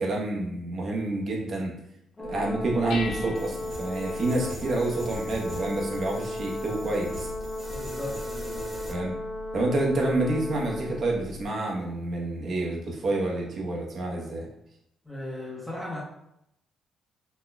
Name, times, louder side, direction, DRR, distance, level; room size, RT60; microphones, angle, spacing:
voice 1, 0.0-1.7 2.2-7.3 8.9-9.1 9.5-14.5, right 2 dB, 50° right, -2 dB, 0.9 m, -28 dB
Dishes pots and pans, 2.2-11.4, left 4 dB, 85° left, 0.8 m, -42 dB
Brass instrument, 2.2-11.1, left 1 dB, 25° left, 0.5 m, -35 dB
sound 1, 3.3-8.9, right 1 dB, 25° right, 1.3 m, -43 dB
voice 2, 7.7-8.7 15.0-16.0, left 1 dB, 5° left, -6 dB, 1.1 m, -37 dB
4.3 x 2.9 x 2.3 m, 0.79 s
cardioid pair, 90°, 0 cm